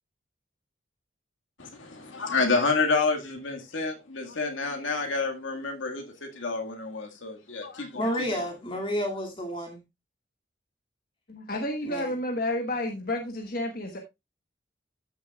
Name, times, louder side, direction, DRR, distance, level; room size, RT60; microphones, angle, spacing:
voice 1, 1.6-8.4, left 4 dB, 90° left, 1.8 m, -29 dB
voice 2, 7.9-9.8 11.9-12.1, equal, 25° left, 2.2 m, -30 dB
voice 3, 11.3-14.0, left 1 dB, 50° left, 1.3 m, -30 dB
13.5 x 6.8 x 2.3 m
head